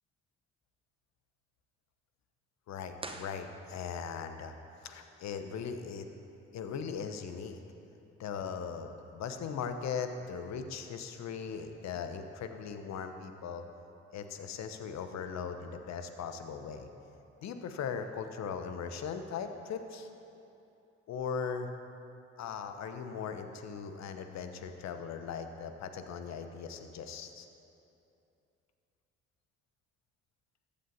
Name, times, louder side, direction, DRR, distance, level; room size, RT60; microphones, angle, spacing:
voice 1, 2.7-4.6 4.8-6.1 6.5-7.6 8.2-13.6 14.1-16.9 17.4-20.1 21.1-21.7 22.4-27.5, left 6 dB, 55° left, 7 dB, 1.1 m, -39 dB
sound 1, 3.0-4.2, right 2 dB, 15° right, 1.1 m, -46 dB
22.5 x 8.5 x 2.9 m, 2.8 s
figure-of-eight pair, 45°, 33 cm